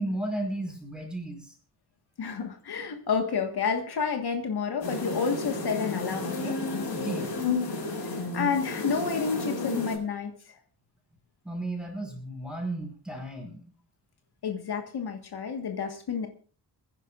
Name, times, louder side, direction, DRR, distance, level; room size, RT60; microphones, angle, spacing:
voice 1, 0.0-1.5 6.9-7.3 11.4-13.6, right 1 dB, ahead, 2 dB, 4.9 m, -34 dB
voice 2, 2.2-6.6 8.0-10.6 14.4-16.3, left 5 dB, 70° left, 5 dB, 1.6 m, -30 dB
sound 1, 4.8-10.0, left 3 dB, 85° left, 6.3 m, -31 dB
27.5 x 10.0 x 2.5 m, 0.40 s
wide cardioid pair, 140°, 40 cm